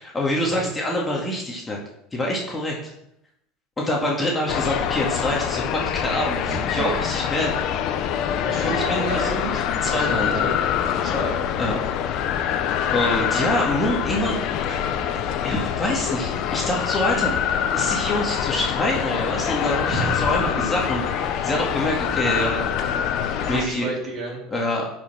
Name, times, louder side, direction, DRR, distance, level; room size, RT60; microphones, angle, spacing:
voice 1, 0.0-1.8 2.1-2.8 3.8-7.5 8.6-9.5 9.8-10.5 11.6-11.8 12.9-14.4 14.7-14.9 15.4-17.4 17.7-22.7 23.5-23.9 24.5-24.9, left 1 dB, 15° left, -2 dB, 2.1 m, -25 dB
sound 1, 4.5-23.7, left 9 dB, 55° left, 0.9 m, -25 dB
voice 2, 6.4-6.9 7.5-7.6 8.4-10.6 11.0-11.3 19.8-20.6 23.4-24.4, right 2 dB, 35° right, -2 dB, 3.8 m, -31 dB
9.3 x 5.7 x 6.1 m, 0.79 s
supercardioid pair, 115°, 0 cm